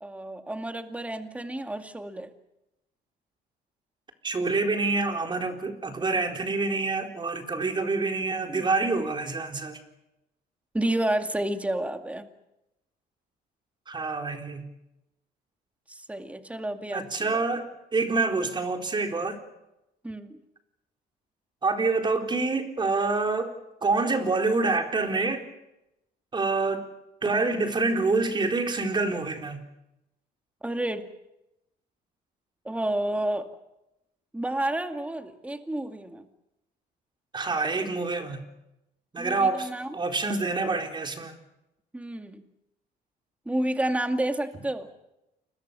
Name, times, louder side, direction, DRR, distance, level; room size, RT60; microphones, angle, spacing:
voice 1, 0.0-2.3 8.5-8.6 10.7-12.3 15.9-17.0 17.3-17.5 20.0-20.4 30.6-31.1 32.6-33.5 34.3-36.3 39.2-39.9 41.9-42.4 43.5-44.9, right 1 dB, 10° right, 6 dB, 2.2 m, -30 dB
voice 2, 4.2-9.8 13.9-14.6 16.9-19.4 21.6-23.5 23.8-25.5 26.3-26.9 27.2-29.6 37.3-38.4 39.1-41.4, right 3 dB, 25° right, 4 dB, 4.2 m, -27 dB
29.0 x 22.5 x 6.9 m, 0.90 s
cardioid pair, 110°, 17 cm